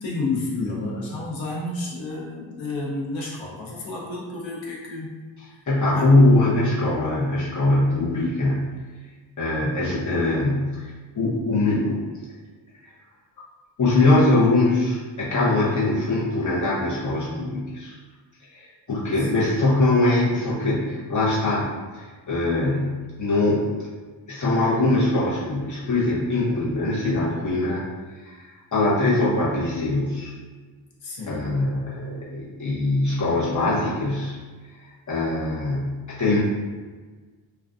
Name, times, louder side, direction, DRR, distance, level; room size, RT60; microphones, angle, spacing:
voice 1, 0.0-5.1 5.9-6.1 19.3-19.4 31.0-31.6, left 2 dB, 80° left, -4 dB, 0.8 m, -30 dB
voice 2, 5.7-8.6 9.4-12.1 12.8-12.9 13.8-17.9 18.5-21.7 21.9-23.7 24.3-27.8 28.2-28.4 28.7-30.4 31.3-34.3 35.1-36.4, left 2 dB, 40° left, -7 dB, 0.7 m, -22 dB
2.5 x 2.2 x 2.3 m, 1.4 s
wide cardioid pair, 160°, 46 cm